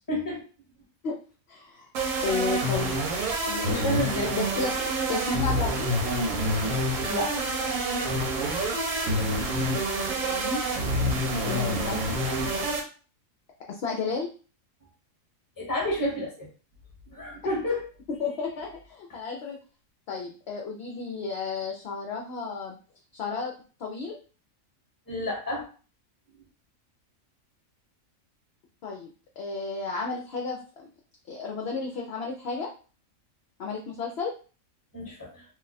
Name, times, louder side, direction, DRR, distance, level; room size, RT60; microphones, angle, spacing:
voice 1, 0.1-0.4 3.7-4.4 7.0-7.4 11.4-11.7 15.6-16.5 17.1-17.9 25.1-25.7 34.9-35.4, left 1 dB, 15° left, -2 dB, 1.1 m, -30 dB
voice 2, 1.5-1.9 2.2-3.0 3.5-5.9 10.2-10.6 11.4-12.0 13.7-14.3 18.2-19.6 20.1-22.8 23.1-23.5 23.8-24.2 28.8-29.1 29.4-30.9 31.3-32.7 33.6-34.3, left 4 dB, 60° left, 0 dB, 0.7 m, -33 dB
sound 1, 1.9-12.8, right 1 dB, 75° right, 1.2 m, -27 dB
2.6 x 2.3 x 3.9 m, 0.37 s
omnidirectional pair, 1.4 m